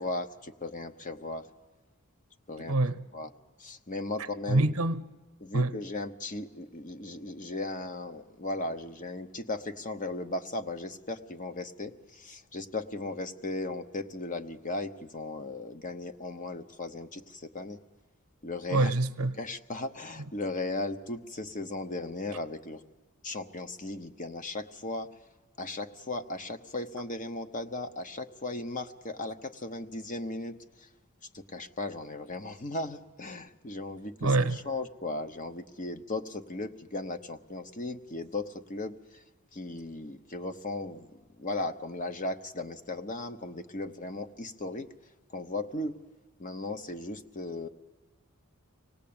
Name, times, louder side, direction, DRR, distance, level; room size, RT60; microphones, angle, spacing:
voice 1, 0.0-1.5 2.5-2.8 3.1-3.3 3.6-4.6 5.4-17.8 18.4-18.9 19.4-22.8 23.2-25.1 25.6-30.9 31.3-39.2 39.5-41.1 41.4-44.9 45.3-45.9 46.4-47.7, left 2 dB, 40° left, 0.9 m, -37 dB
voice 2, 2.7-3.0 4.5-5.0 5.5-5.7 18.7-19.4 34.2-34.6, right 2 dB, 80° right, 0.8 m, -25 dB
25.0 x 18.0 x 8.7 m
head